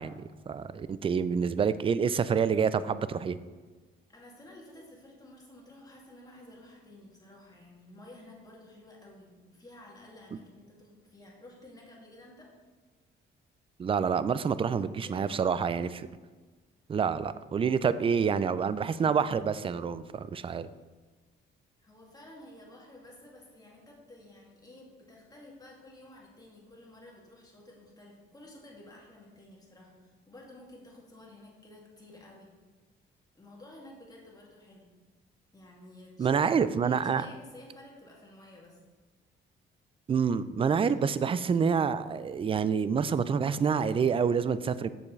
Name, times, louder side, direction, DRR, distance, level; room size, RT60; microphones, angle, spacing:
voice 1, 0.0-3.4 13.8-16.1 16.9-20.7 36.2-37.3 40.1-44.9, right 6 dB, 30° right, 15 dB, 0.3 m, -27 dB
voice 2, 4.1-12.5 15.0-15.6 21.8-32.5 33.3-34.9 35.5-36.4 36.8-38.8, left 1 dB, 20° left, -2 dB, 2.2 m, -52 dB
7.3 x 7.0 x 3.2 m, 1.4 s
cardioid pair, 90°, 20 cm